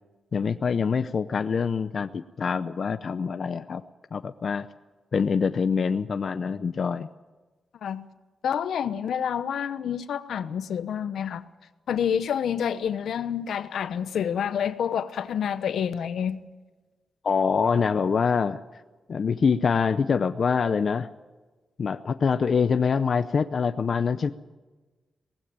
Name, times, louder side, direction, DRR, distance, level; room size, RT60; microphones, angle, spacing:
voice 1, 0.3-3.8 4.1-4.7 5.1-7.1 17.2-18.6 19.1-21.1 21.8-24.3, left 5 dB, 50° left, 0.6 m, -25 dB
voice 2, 8.4-11.5 11.9-16.4, left 8 dB, 80° left, 0.9 m, -28 dB
19.0 x 15.5 x 8.8 m
wide cardioid pair, 120°, 0 cm